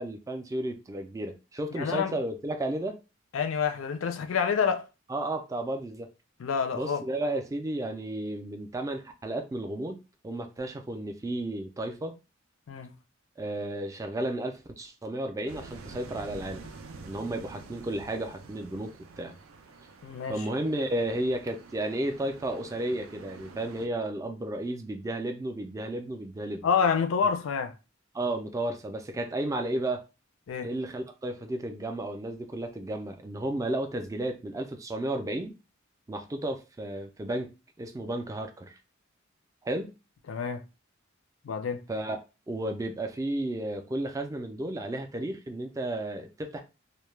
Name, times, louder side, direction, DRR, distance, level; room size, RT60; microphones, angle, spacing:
voice 1, 0.0-3.0 5.1-6.1 6.7-12.1 13.4-16.6 17.0-19.3 20.3-26.7 28.1-30.0 30.6-35.5 36.1-38.8 39.6-39.9 41.9-42.2 42.5-46.6, right 1 dB, 15° right, 0.3 m, -33 dB
voice 2, 1.8-2.1 3.3-4.9 6.4-7.0 12.7-12.9 20.0-20.4 26.6-27.7 30.5-30.7 40.3-40.6 41.4-41.8, left 6 dB, 70° left, 0.4 m, -27 dB
sound 1, 15.5-23.9, right 4 dB, 90° right, 0.4 m, -47 dB
2.2 x 2.0 x 3.1 m
head